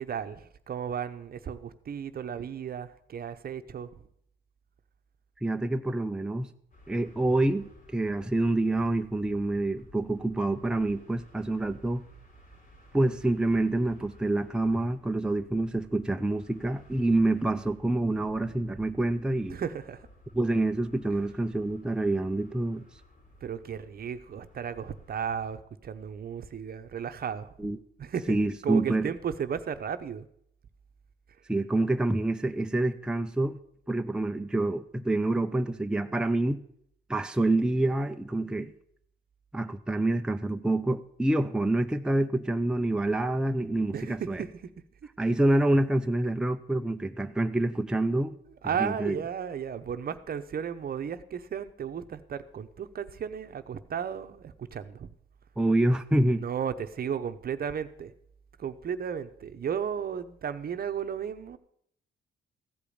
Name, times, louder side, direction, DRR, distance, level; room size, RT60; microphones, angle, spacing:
voice 1, 0.0-3.9 19.5-20.1 23.4-27.5 28.0-30.3 43.9-44.5 48.6-55.1 56.4-58.1 58.6-61.6, right 8 dB, 50° right, 9 dB, 0.9 m, -34 dB
voice 2, 5.4-6.5 6.9-12.0 12.9-19.6 20.3-22.8 27.6-27.8 28.3-29.1 31.5-33.6 33.9-36.6 37.1-38.7 39.5-44.4 45.2-48.4 48.8-49.2 55.6-56.4, right 2 dB, 5° right, 6 dB, 0.6 m, -27 dB
sound 1, 6.7-25.6, left 1 dB, 45° left, 3.6 m, -56 dB
15.0 x 5.0 x 8.7 m, 0.70 s
cardioid pair, 90°, 20 cm